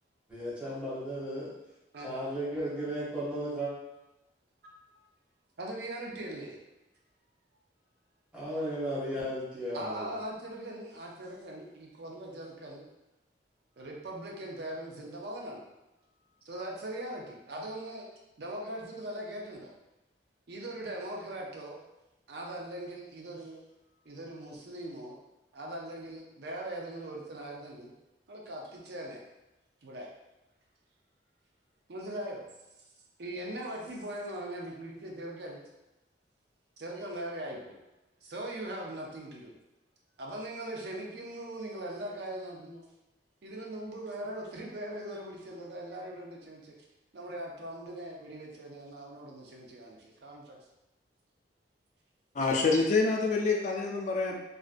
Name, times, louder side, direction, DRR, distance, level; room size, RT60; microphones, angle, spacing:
voice 1, 0.3-1.5 2.0-3.7 8.3-10.1, equal, 5° right, -9 dB, 0.7 m, -35 dB
voice 2, 5.6-6.6 9.7-12.8 13.8-15.7 16.4-18.0 18.4-19.7 20.5-21.8 22.3-23.6 24.0-25.2 25.5-27.9 28.3-29.2 29.8-30.1 31.9-32.5 33.2-35.6 36.8-37.8 38.2-39.5 40.2-42.8 43.4-46.7 47.1-50.6 52.5-52.7, right 1 dB, 60° right, -1 dB, 0.5 m, -40 dB
voice 3, 52.3-54.4, left 3 dB, 40° left, 1 dB, 0.3 m, -27 dB
2.5 x 2.2 x 2.4 m, 0.97 s
head